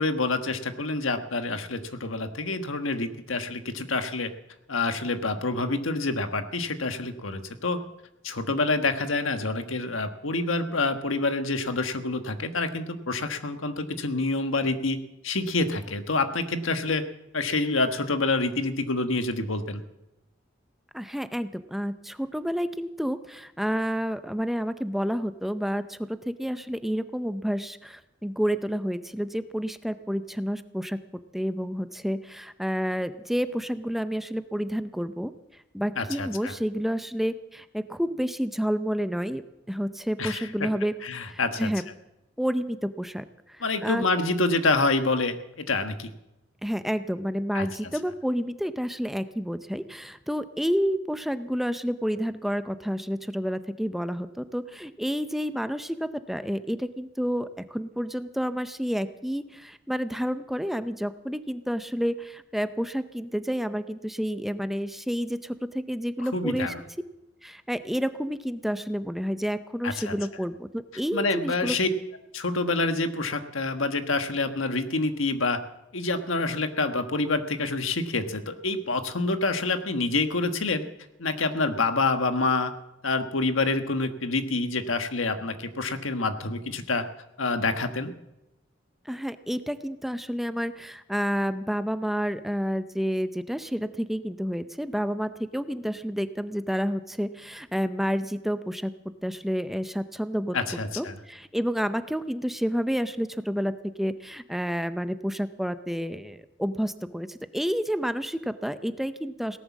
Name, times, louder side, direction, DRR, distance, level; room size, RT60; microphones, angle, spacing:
voice 1, 0.0-4.3 4.7-7.8 8.2-15.0 15.2-17.0 17.3-19.8 36.0-36.5 40.2-40.5 41.0-41.7 43.6-46.1 47.5-47.7 66.3-66.8 69.8-70.1 71.1-71.9 72.3-75.6 75.9-80.8 81.2-82.7 83.0-87.0 87.4-88.1 100.5-101.1, left 3 dB, 90° left, 8 dB, 1.4 m, -27 dB
voice 2, 20.9-26.0 26.3-31.0 31.3-35.3 35.7-40.9 41.3-41.8 42.4-44.0 46.6-66.7 67.4-71.8 89.1-98.9 99.2-100.6 101.0-109.6, equal, ahead, 11 dB, 0.6 m, -29 dB
17.5 x 11.5 x 7.2 m, 0.90 s
head